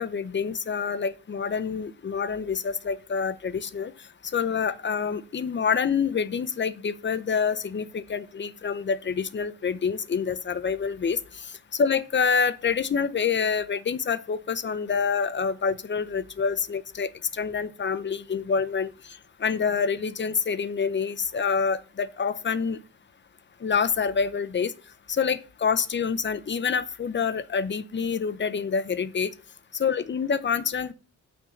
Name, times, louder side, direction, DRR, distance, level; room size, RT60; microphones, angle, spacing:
voice 1, 0.0-3.9 4.3-22.8 23.6-24.7 25.1-29.3 29.7-30.9, left 6 dB, 35° left, 14 dB, 0.7 m, -27 dB
9.0 x 4.4 x 7.1 m, 0.36 s
wide cardioid pair, 125°, 32 cm